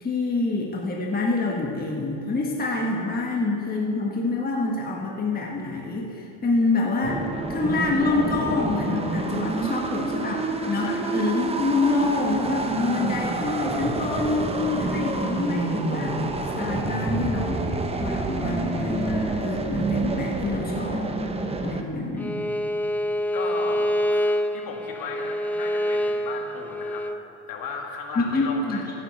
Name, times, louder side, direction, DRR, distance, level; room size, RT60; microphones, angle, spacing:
voice 1, 0.0-7.2 7.5-16.2 16.6-21.1 21.6-22.5 28.1-28.9, left 3 dB, 25° left, -1 dB, 1.5 m, -26 dB
sound 1, 7.0-21.8, right 2 dB, 15° right, 1.0 m, -28 dB
Bowed string instrument, 22.2-27.2, equal, 5° left, 0.4 m, -26 dB
voice 2, 23.3-27.1 27.5-28.8, left 4 dB, 55° left, 0 dB, 2.2 m, -36 dB
15.5 x 10.0 x 4.2 m, 2.8 s
supercardioid pair, 100°, 40 cm